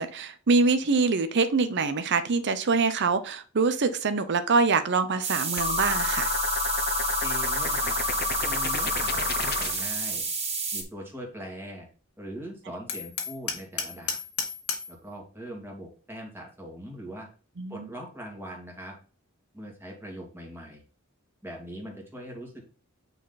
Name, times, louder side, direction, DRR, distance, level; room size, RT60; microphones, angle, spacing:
voice 1, 0.0-6.3 17.6-17.9, right 4 dB, 55° right, 0.6 m, -24 dB
sound 1, 5.2-10.8, right 4 dB, 30° right, 1.8 m, -30 dB
sound 2, 5.6-10.0, left 6 dB, 45° left, 0.7 m, -29 dB
voice 2, 7.2-8.0 8.4-10.2 10.7-11.9 12.2-14.2 14.9-17.3 17.7-19.0 19.5-20.8 21.4-22.6, equal, 10° right, 2.2 m, -41 dB
Hammer, 12.9-15.0, left 6 dB, 85° left, 1.5 m, -33 dB
9.1 x 4.1 x 4.0 m
head